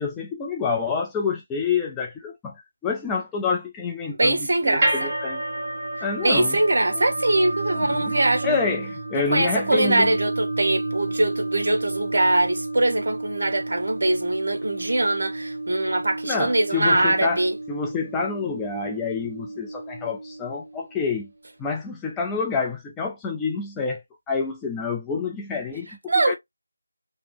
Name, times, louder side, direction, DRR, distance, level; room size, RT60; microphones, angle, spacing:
voice 1, 0.0-5.4 6.0-6.6 6.9-7.0 7.7-8.2 8.4-10.1 16.2-21.3 21.6-26.4, left 5 dB, 10° left, 0.3 m, -28 dB
voice 2, 4.1-5.1 6.2-8.6 9.1-17.5 26.1-26.4, right 2 dB, 50° right, 1.5 m, -22 dB
sound 1, 4.8-21.0, right 2 dB, 30° right, 1.2 m, -31 dB
3.1 x 3.0 x 3.3 m
figure-of-eight pair, 165°, 0 cm